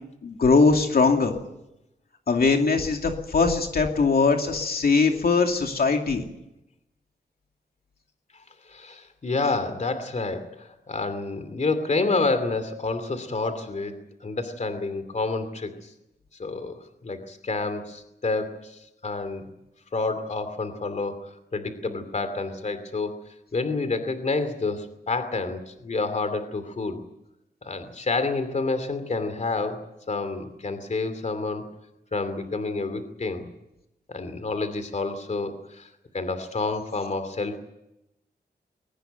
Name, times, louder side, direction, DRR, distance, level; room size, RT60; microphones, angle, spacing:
voice 1, 0.2-1.3 2.3-6.2, left 4 dB, 60° left, 3 dB, 2.6 m, -21 dB
voice 2, 8.7-15.9 16.4-19.4 19.9-23.2 23.5-27.0 27.6-31.6 32.1-33.5 34.1-35.9 36.1-37.6, left 3 dB, 45° left, 10 dB, 2.6 m, -29 dB
21.5 x 18.5 x 9.3 m, 0.87 s
wide cardioid pair, 135°, 17 cm